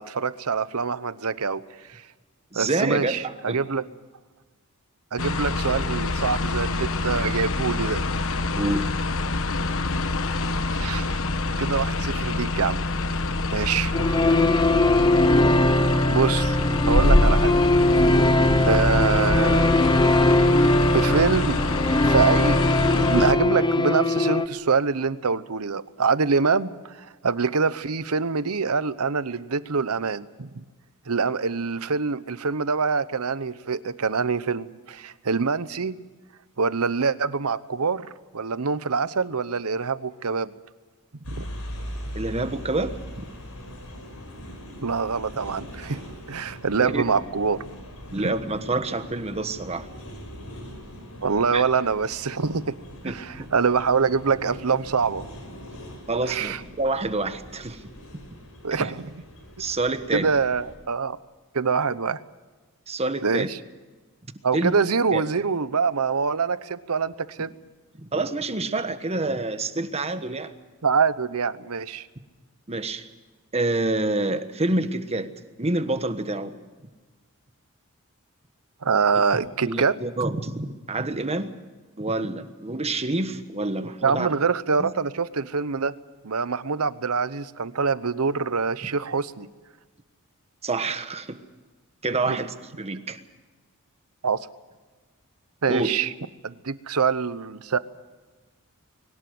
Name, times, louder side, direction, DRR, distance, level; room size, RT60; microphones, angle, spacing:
voice 1, 0.0-1.6 1.9-2.0 2.5-3.8 5.1-8.0 10.7-11.2 11.6-12.8 13.5-13.9 16.1-17.6 18.6-19.7 20.9-21.6 22.0-22.6 22.9-30.6 31.1-35.9 36.6-38.1 38.3-40.5 41.3-41.5 44.8-46.0 46.3-47.6 51.2-52.7 53.0-55.3 56.3-56.6 58.6-59.1 60.1-61.2 61.5-62.2 63.2-63.6 64.4-67.5 70.8-72.1 78.8-80.0 84.0-85.9 86.2-89.5 92.3-92.4 94.2-94.5 95.6-96.1 96.4-97.8, right 5 dB, 75° right, 16 dB, 0.9 m, -25 dB
voice 2, 2.5-3.6 8.6-8.9 14.3-14.4 42.1-43.2 46.8-47.0 48.1-49.9 51.5-51.6 53.0-53.5 56.1-57.8 58.7-58.9 59.6-60.3 62.9-63.5 64.5-64.7 65.1-65.2 68.0-70.5 72.7-73.1 73.5-75.3 75.6-76.5 79.6-81.5 82.0-84.3 84.8-84.9 88.8-88.9 90.6-91.4 92.0-93.2 95.7-95.9, right 2 dB, 30° right, 10 dB, 1.3 m, -27 dB
sound 1, 5.2-23.3, left 2 dB, 65° left, 1.2 m, -25 dB
sound 2, 13.9-24.5, left 2 dB, 20° left, 0.8 m, -20 dB
sound 3, 41.2-60.7, equal, 85° left, 6.4 m, -41 dB
22.5 x 18.5 x 7.8 m, 1.3 s
head